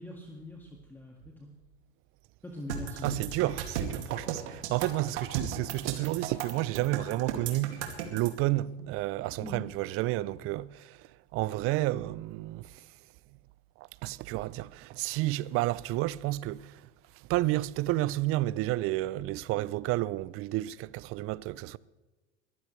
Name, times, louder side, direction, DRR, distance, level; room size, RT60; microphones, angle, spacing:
voice 1, 0.0-1.5 2.4-3.2 9.4-9.6, left 1 dB, 5° left, 2.0 m, -42 dB
sound 1, 2.7-8.3, right 9 dB, 70° right, 2.5 m, -35 dB
voice 2, 3.0-12.9 13.8-16.9 17.1-21.8, right 17 dB, 40° right, 0.6 m, -31 dB
21.5 x 14.5 x 3.3 m
hypercardioid pair, 90°, 36 cm